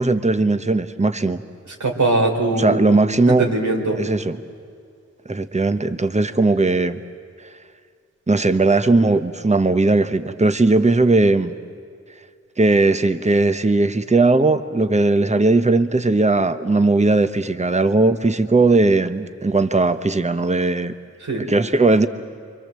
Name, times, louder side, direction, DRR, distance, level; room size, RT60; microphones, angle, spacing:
voice 1, 0.0-1.4 2.6-3.5 4.0-4.4 5.3-7.0 8.3-11.5 12.6-20.9 21.4-22.1, right 3 dB, 25° right, 10 dB, 1.0 m, -18 dB
voice 2, 1.8-2.9 3.3-4.0 21.2-21.4, right 2 dB, 85° right, 0 dB, 3.9 m, -21 dB
29.5 x 24.5 x 7.6 m, 2.3 s
wide cardioid pair, 85°, 29 cm